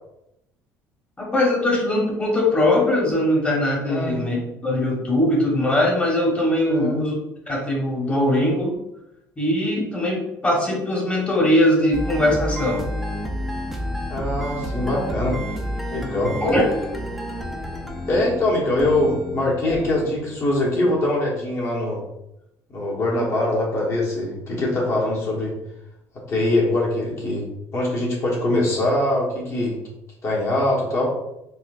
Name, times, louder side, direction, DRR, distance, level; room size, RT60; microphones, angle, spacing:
voice 1, 1.2-4.4 4.6-7.1 7.5-8.8 9.4-12.8 16.4-16.6, left 1 dB, 20° left, -2 dB, 1.2 m, -21 dB
voice 2, 3.9-4.2 6.7-7.0 14.1-15.4 15.9-16.4 18.1-22.0 22.7-25.5 26.3-27.5 27.7-29.8 30.2-31.1, left 1 dB, 45° left, -4 dB, 1.3 m, -23 dB
sound 1, 11.9-21.1, equal, ahead, 0.5 m, -30 dB
4.1 x 2.4 x 2.5 m, 0.85 s
cardioid pair, 100°, 7 cm